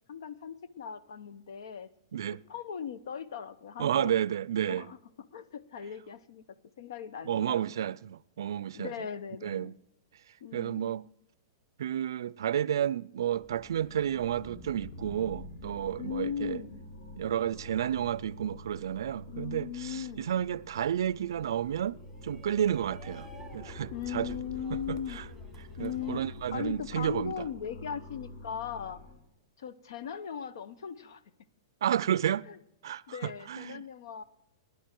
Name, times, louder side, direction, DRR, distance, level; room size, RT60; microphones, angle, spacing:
voice 1, 0.1-1.9 2.5-4.1 4.7-6.4 6.8-7.6 8.7-9.7 10.4-10.9 16.0-16.8 19.3-20.3 23.9-25.2 25.8-26.2 26.5-29.0 29.6-31.2 32.5-32.6 33.1-34.2, left 8 dB, 75° left, 0.9 m, -38 dB
voice 2, 3.8-4.9 7.3-8.9 9.4-9.7 10.5-11.0 11.8-16.6 17.2-24.4 24.9-25.2 25.8-27.5 31.8-32.5 32.8-33.8, right 10 dB, 80° right, 0.4 m, -31 dB
sound 1, 13.3-29.1, left 2 dB, 50° left, 6.3 m, -47 dB
Shout, 22.0-27.1, right 1 dB, ahead, 1.7 m, -55 dB
21.0 x 11.0 x 4.5 m
supercardioid pair, 160°, 2 cm